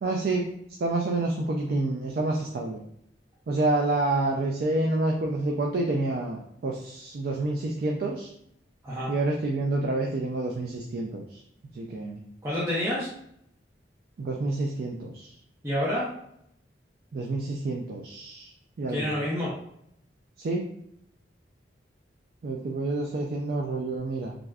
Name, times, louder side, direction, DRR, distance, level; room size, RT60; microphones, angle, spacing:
voice 1, 0.0-0.5 0.8-2.8 3.5-8.3 9.1-11.4 11.7-12.2 14.2-15.3 17.1-18.5 18.8-19.1 20.4-20.6 22.4-24.3, right 2 dB, 55° right, 1 dB, 0.3 m, -28 dB
voice 2, 12.4-13.1 15.6-16.1 18.9-19.5, left 1 dB, 15° right, -8 dB, 0.6 m, -28 dB
3.3 x 2.5 x 2.3 m, 0.74 s
head